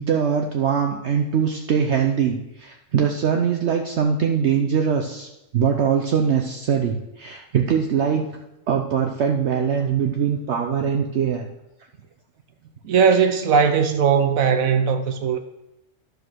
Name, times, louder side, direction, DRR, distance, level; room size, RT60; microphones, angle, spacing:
voice 1, 0.0-8.3 8.7-11.5, right 7 dB, 60° right, 0.9 m, -22 dB
voice 2, 12.8-15.4, right 6 dB, 80° right, 1.1 m, -18 dB
11.0 x 5.0 x 6.2 m
omnidirectional pair, 1.4 m